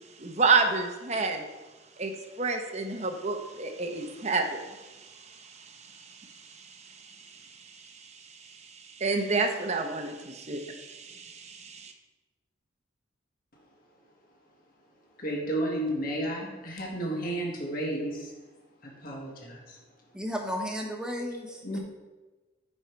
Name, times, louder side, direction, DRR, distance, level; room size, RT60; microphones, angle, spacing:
voice 1, 0.2-1.4 2.0-11.9, right 4 dB, 35° right, 5 dB, 0.8 m, -31 dB
voice 2, 15.2-18.3 19.0-19.8 21.6-21.8, right 1 dB, 45° left, -1 dB, 1.6 m, -32 dB
voice 3, 20.1-21.6, equal, 5° right, 1 dB, 1.1 m, -33 dB
9.3 x 5.5 x 4.6 m, 1.2 s
head